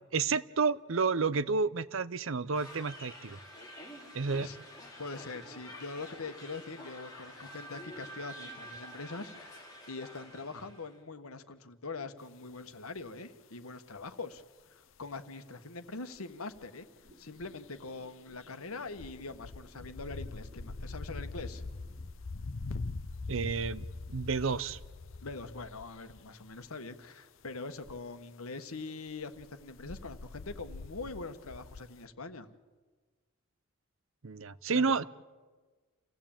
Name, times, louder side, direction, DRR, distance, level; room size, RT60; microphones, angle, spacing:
voice 1, 0.1-3.4 4.1-4.5 23.3-23.8 24.1-24.8 34.2-35.0, right 4 dB, 65° right, 17 dB, 0.7 m, -30 dB
sound 1, 2.5-10.9, equal, 15° left, 4.0 m, -48 dB
voice 2, 5.0-14.4 14.7-16.9 17.2-21.6 25.2-32.5 34.7-35.0, left 3 dB, 90° left, 10 dB, 1.4 m, -43 dB
sound 2, 13.0-13.1 14.0-14.1 14.4-14.5 16.2-16.3 16.5-16.7 17.1-17.2 17.4-17.9 18.3-26.3 26.6-26.7 27.8-28.0 29.1-31.8, left 3 dB, 65° left, 0.8 m, -43 dB
sound 3, 17.0-22.0, right 1 dB, 30° right, 5.9 m, -62 dB
28.0 x 16.0 x 8.9 m, 1.4 s
head